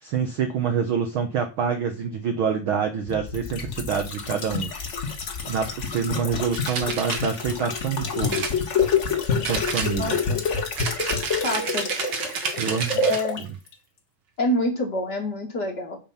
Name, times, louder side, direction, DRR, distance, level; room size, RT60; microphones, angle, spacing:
voice 1, 0.0-4.7 5.5-8.6 9.3-10.2 12.6-13.1 13.4-13.5, right 6 dB, 80° right, 6 dB, 1.1 m, -26 dB
sound 1, 3.1-13.4 13.7-13.8, left 5 dB, 70° left, 0.6 m, -27 dB
sound 2, 6.5-7.3 8.3-9.1 9.4-10.3 10.8-13.3, right 5 dB, 50° right, 1.7 m, -30 dB
voice 2, 10.0-10.4 11.4-11.9 13.0-13.4 14.4-16.0, left 1 dB, 35° left, 0 dB, 2.4 m, -27 dB
9.0 x 5.8 x 5.7 m, 0.32 s
omnidirectional pair, 3.7 m